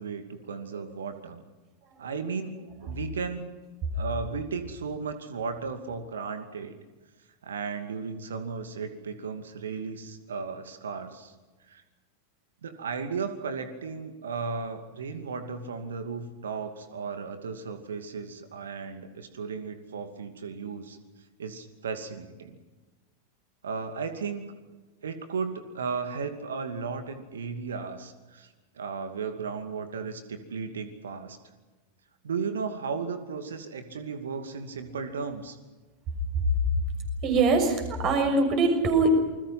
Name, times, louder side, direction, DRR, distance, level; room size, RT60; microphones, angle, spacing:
voice 1, 0.0-1.4 2.0-3.4 3.9-6.8 7.4-11.3 11.7-11.8 12.6-21.0 21.4-22.6 23.6-24.4 25.0-28.5 28.8-31.4 32.2-35.6, right 5 dB, 65° right, 8 dB, 2.5 m, -35 dB
voice 2, 37.2-39.1, right 3 dB, 35° right, 5 dB, 6.5 m, -23 dB
28.0 x 21.5 x 5.9 m, 1.2 s
figure-of-eight pair, 90°, 0 cm